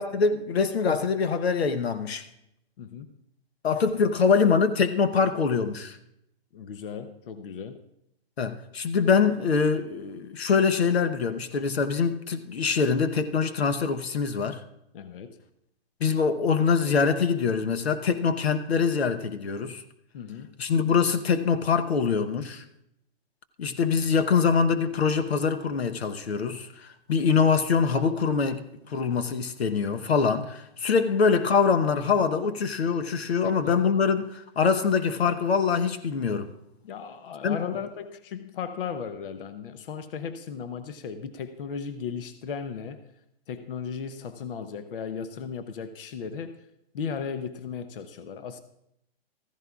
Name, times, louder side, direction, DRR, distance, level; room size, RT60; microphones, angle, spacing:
voice 1, 0.0-2.3 3.6-6.0 8.4-14.6 16.0-19.8 20.6-22.6 23.6-36.5 37.4-37.6, left 5 dB, 85° left, 1.0 m, -24 dB
voice 2, 2.8-3.1 6.5-7.8 14.9-15.4 20.1-20.5 33.4-33.7 36.8-43.1 43.5-46.6 46.9-48.6, left 6 dB, 60° left, 0.8 m, -36 dB
14.5 x 14.5 x 2.4 m
hypercardioid pair, 150°, 31 cm